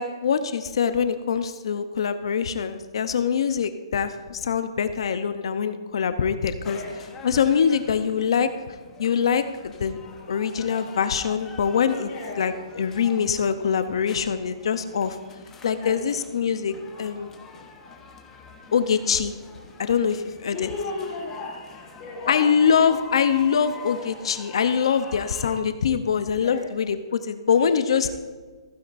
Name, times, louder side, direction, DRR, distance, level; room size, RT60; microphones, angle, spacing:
voice 1, 0.0-6.8 7.2-8.5 9.0-10.0 10.3-12.1 12.4-15.2 15.6-17.3 18.7-19.3 19.8-20.7 22.3-28.1, left 7 dB, 65° left, 10 dB, 0.7 m, -23 dB
sound 1, 6.6-25.6, left 4 dB, 10° left, 1.0 m, -45 dB
voice 2, 12.0-12.6 15.8-16.0 20.5-22.9 26.4-26.7 28.0-28.1, left 3 dB, 30° left, -4 dB, 2.6 m, -35 dB
15.0 x 9.4 x 2.6 m, 1.4 s
hypercardioid pair, 160°, 3 cm